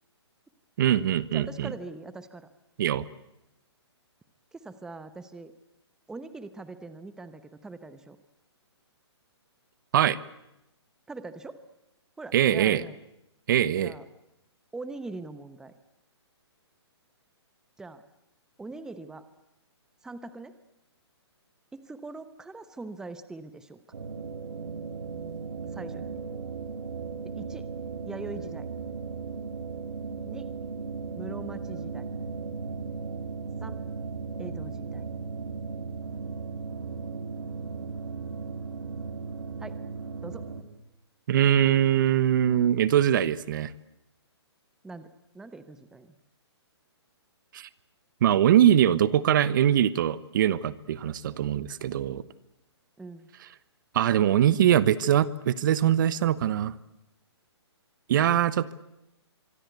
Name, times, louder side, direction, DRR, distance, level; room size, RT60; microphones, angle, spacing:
voice 1, 0.8-1.7 2.8-3.0 9.9-10.2 12.3-12.8 13.5-13.9 41.3-43.7 47.5-47.7 48.2-52.2 53.9-56.7 58.1-58.7, right 10 dB, 45° right, 17 dB, 1.1 m, -22 dB
voice 2, 1.3-2.5 4.5-5.5 6.1-8.2 11.1-11.6 12.2-13.0 13.8-14.0 14.7-15.7 17.8-18.0 18.6-19.2 20.0-20.6 21.7-23.8 25.7-26.2 27.2-27.7 28.0-28.7 30.2-30.5 31.2-32.1 33.6-33.8 34.4-35.0 39.6-39.8 40.2-40.5 44.8-45.1 45.3-46.1 53.0-53.3, right 3 dB, 5° right, 12 dB, 1.0 m, -42 dB
sound 1, 23.9-40.6, right 5 dB, 80° right, 3.7 m, -36 dB
25.0 x 24.0 x 8.1 m, 0.88 s
hypercardioid pair, 155°, 14 cm